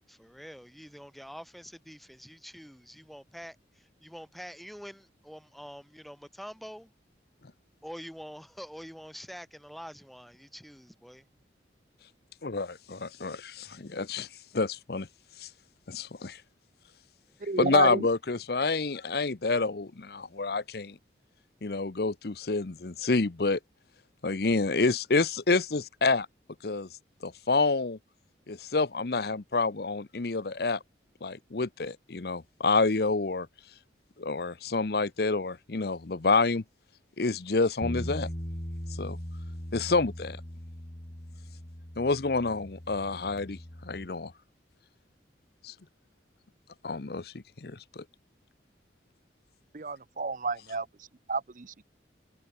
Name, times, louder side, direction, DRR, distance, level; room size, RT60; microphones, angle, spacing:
voice 1, 0.1-6.9 7.8-11.3 17.3-17.5, equal, ahead, 5.9 m, -46 dB
voice 2, 12.4-14.3 14.5-15.1 15.4-15.5 15.9-16.4 17.6-21.0 21.6-23.6 24.2-26.3 26.6-26.9 27.2-28.0 28.5-30.8 31.2-33.5 34.2-36.6 37.2-38.3 39.0-39.2 39.7-40.4 42.0-44.3 45.6-45.7 46.8-47.3 47.6-48.0, left 3 dB, 55° left, 0.8 m, -28 dB
voice 3, 17.4-18.1 49.7-51.8, right 3 dB, 45° right, 0.7 m, -31 dB
Bass guitar, 37.8-44.1, equal, 35° left, 2.5 m, -39 dB
head